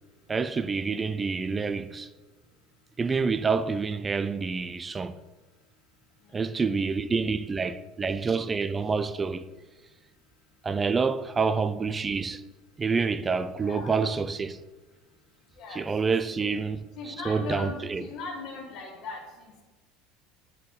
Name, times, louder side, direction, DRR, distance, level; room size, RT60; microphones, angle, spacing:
voice 1, 0.3-2.1 3.0-5.2 6.3-9.4 10.6-12.4 12.8-14.6 15.7-18.1, right 5 dB, 20° right, 0.3 m, -28 dB
voice 2, 13.6-14.0 15.6-16.5 17.0-19.6, left 3 dB, 50° left, 1.4 m, -39 dB
8.5 x 4.3 x 4.0 m
supercardioid pair, 135°, 0 cm